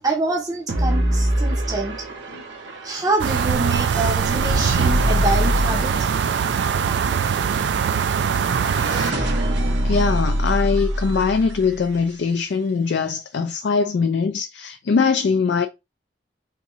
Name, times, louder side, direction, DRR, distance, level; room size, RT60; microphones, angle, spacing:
voice 1, 0.0-2.0 2.8-5.9, right 2 dB, 20° right, 0.6 m, -25 dB
sound 1, 0.7-12.0, equal, 85° right, 0.9 m, -25 dB
sound 2, 3.2-9.1, right 7 dB, 70° right, 0.3 m, -22 dB
voice 2, 8.6-9.4 9.8-15.7, left 5 dB, 75° left, 0.4 m, -22 dB
3.6 x 2.7 x 3.0 m
head